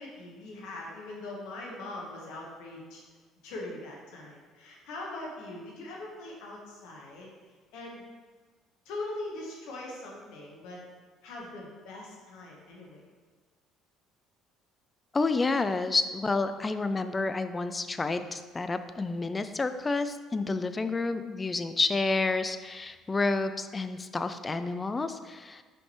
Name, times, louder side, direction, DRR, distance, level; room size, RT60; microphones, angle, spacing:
voice 1, 0.0-3.0 3.4-7.3 7.7-8.0 8.8-10.8 11.2-13.0, left 2 dB, 65° left, -2 dB, 1.4 m, -41 dB
voice 2, 15.1-25.6, left 3 dB, 25° left, 10 dB, 0.4 m, -29 dB
5.7 x 5.1 x 3.2 m, 1.4 s
hypercardioid pair, 55°, 0 cm